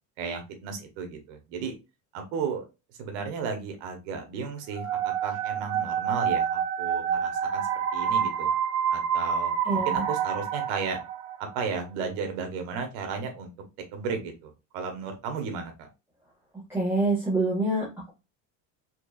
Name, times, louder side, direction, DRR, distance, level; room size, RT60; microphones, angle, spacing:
voice 1, 0.2-1.7 2.1-2.6 3.0-8.5 8.9-11.0 11.4-13.5 13.9-15.9, right 5 dB, 85° right, 5 dB, 1.1 m, -34 dB
sound 1, 4.7-11.5, right 8 dB, 45° right, 1.0 m, -28 dB
voice 2, 9.7-10.0 16.7-18.1, right 2 dB, 5° right, -9 dB, 1.2 m, -26 dB
4.5 x 2.9 x 2.3 m, 0.27 s
cardioid pair, 175°, 37 cm